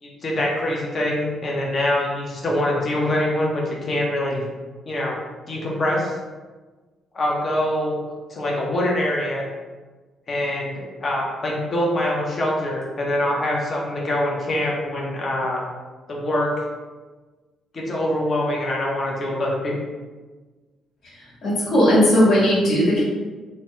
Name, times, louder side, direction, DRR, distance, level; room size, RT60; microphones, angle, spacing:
voice 1, 0.0-4.4 4.9-6.2 7.1-8.0 8.3-9.5 10.3-15.6 16.1-16.5 17.7-19.8, left 1 dB, 45° left, -2 dB, 0.7 m, -24 dB
voice 2, 21.1-23.0, equal, 65° left, -9 dB, 1.4 m, -18 dB
3.0 x 2.2 x 2.9 m, 1.3 s
cardioid pair, 90°, 0 cm